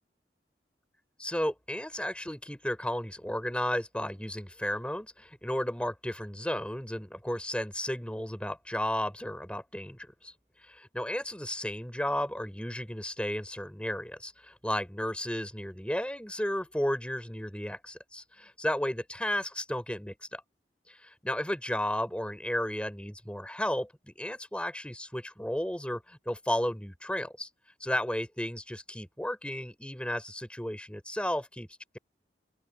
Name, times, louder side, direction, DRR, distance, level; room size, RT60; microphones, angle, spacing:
voice 1, 1.2-10.3 10.6-20.4 20.9-27.5 27.8-31.7, left 1 dB, 5° left, 5.6 m, -33 dB
open air
head